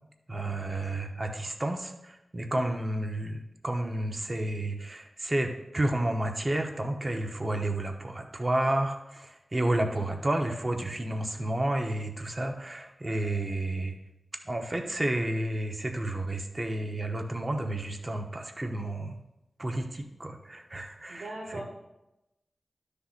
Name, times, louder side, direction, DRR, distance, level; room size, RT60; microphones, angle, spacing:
voice 1, 0.3-13.9 14.4-19.2 19.6-21.6, right 1 dB, 30° right, 4 dB, 0.9 m, -31 dB
voice 2, 9.5-9.9 21.1-21.6, right 1 dB, 90° right, -1 dB, 1.2 m, -41 dB
12.5 x 6.7 x 2.5 m, 0.93 s
wide cardioid pair, 100°, 0 cm